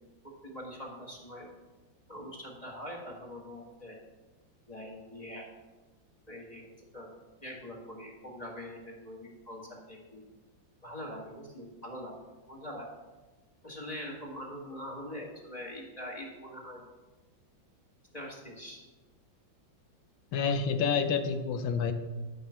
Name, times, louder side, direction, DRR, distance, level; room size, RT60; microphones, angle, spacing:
voice 1, 0.4-1.5 2.1-4.0 4.7-5.4 6.3-6.7 6.9-7.1 7.4-10.2 10.8-12.1 12.5-12.9 13.6-16.8 18.1-18.8, equal, 20° left, -2 dB, 1.8 m, -43 dB
voice 2, 20.3-21.9, left 6 dB, 80° left, 9 dB, 1.5 m, -28 dB
11.5 x 5.4 x 5.7 m, 1.2 s
omnidirectional pair, 2.1 m